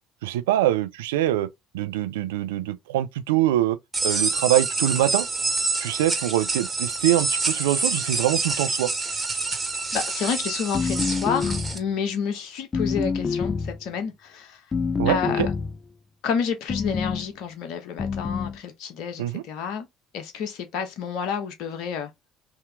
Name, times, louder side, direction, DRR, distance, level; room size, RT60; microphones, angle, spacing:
voice 1, 0.2-3.8 4.0-5.3 5.8-8.9 15.0-15.5 19.2-19.4, right 14 dB, 80° right, 0.4 m, -24 dB
sound 1, 3.9-11.8, right 3 dB, 20° right, 1.6 m, -27 dB
voice 2, 9.9-14.7 15.0-15.5 16.2-19.9 20.1-22.1, left 7 dB, 65° left, 0.9 m, -30 dB
sound 2, 10.7-11.9 12.7-13.8 14.7-15.8 16.7-17.3 18.0-18.6, left 5 dB, 30° left, 0.4 m, -27 dB
3.6 x 2.8 x 3.4 m
hypercardioid pair, 65°, 0 cm